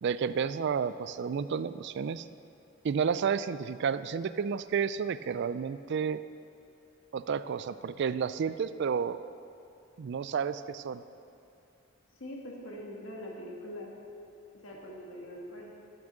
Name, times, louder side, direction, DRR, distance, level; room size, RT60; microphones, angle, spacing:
voice 1, 0.0-2.3 2.8-6.2 7.1-9.2 10.0-11.0, right 6 dB, 55° right, 14 dB, 0.4 m, -31 dB
voice 2, 12.1-13.9 14.6-15.7, equal, 75° left, -2 dB, 1.6 m, -43 dB
12.0 x 6.1 x 6.6 m, 2.6 s
head